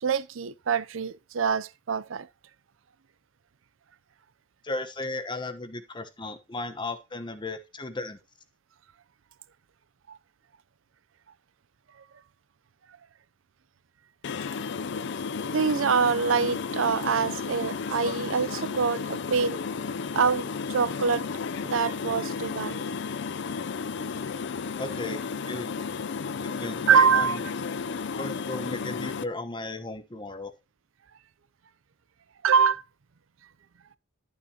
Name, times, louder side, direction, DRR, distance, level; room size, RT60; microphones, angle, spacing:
voice 1, 0.0-2.3 10.1-10.2 15.4-19.6 20.1-21.3 21.7-22.9 26.9-27.4 32.4-32.8, right 6 dB, 85° right, 0.6 m, -25 dB
voice 2, 4.6-8.2 24.8-25.7 26.4-27.5 28.2-30.5, left 2 dB, 25° left, 1.0 m, -35 dB
sound 1, 14.2-29.2, left 5 dB, 65° left, 0.5 m, -33 dB
11.5 x 7.2 x 2.9 m
head